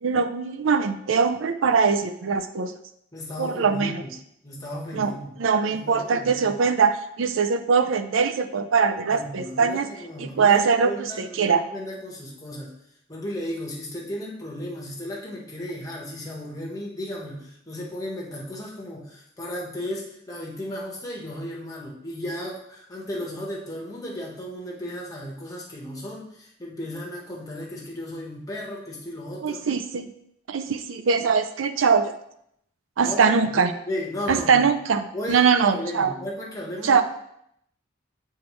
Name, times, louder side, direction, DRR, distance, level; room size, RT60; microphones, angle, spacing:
voice 1, 0.0-2.7 3.4-4.0 4.9-5.1 5.4-9.9 10.2-11.6 29.4-30.1 30.5-32.1 33.0-33.7 34.3-36.1 36.8-37.0, right 5 dB, 75° right, 9 dB, 0.5 m, -22 dB
voice 2, 3.1-4.1 4.4-5.3 5.8-6.6 9.1-12.7 13.1-29.7 33.0-33.5 33.9-34.7 35.1-37.0, left 1 dB, 20° left, -3 dB, 1.4 m, -35 dB
8.2 x 4.4 x 3.2 m, 0.75 s
head